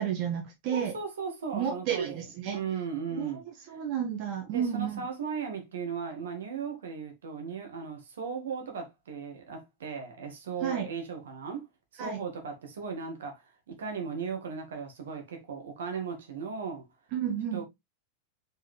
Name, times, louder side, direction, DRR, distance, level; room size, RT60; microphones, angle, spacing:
voice 1, 0.0-0.9 1.5-2.6 3.1-3.3 3.7-5.0 10.6-10.9 12.0-12.2 17.1-17.6, right 9 dB, 40° right, 1.6 m, -31 dB
voice 2, 0.7-2.2 2.5-3.4 4.5-11.7 11.9-16.8 17.5-17.6, right 5 dB, 65° right, 2.0 m, -37 dB
6.2 x 5.0 x 3.3 m
figure-of-eight pair, 90°, 0 cm